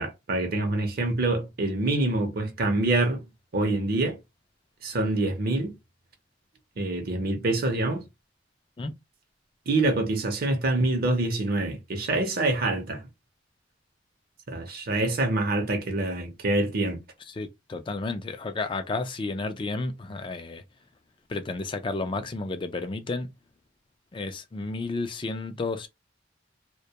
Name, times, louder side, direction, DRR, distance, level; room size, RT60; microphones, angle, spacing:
voice 1, 0.0-3.2 3.5-4.2 4.8-5.7 6.8-8.0 9.7-13.0 14.5-17.0, right 2 dB, 55° right, 0.6 m, -26 dB
voice 2, 17.3-20.6 21.3-23.3 24.1-25.9, left 3 dB, 25° left, 0.3 m, -32 dB
2.2 x 2.2 x 2.8 m
head